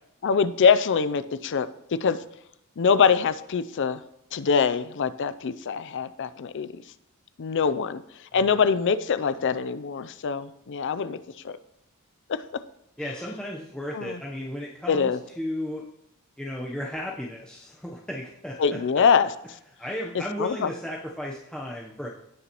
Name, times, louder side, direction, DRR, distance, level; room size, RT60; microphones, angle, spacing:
voice 1, 0.2-1.7 2.0-2.2 2.8-4.0 4.3-6.7 7.4-8.0 8.3-11.2 11.4-11.6 12.3-12.6 13.9-14.2 14.9-15.2 18.6-19.3 20.1-20.7, left 6 dB, 55° left, 15 dB, 0.5 m, -24 dB
voice 2, 8.3-8.6 13.0-15.8 16.4-18.8 19.8-22.1, left 1 dB, 5° left, -3 dB, 0.8 m, -34 dB
17.0 x 7.0 x 3.0 m, 0.81 s
head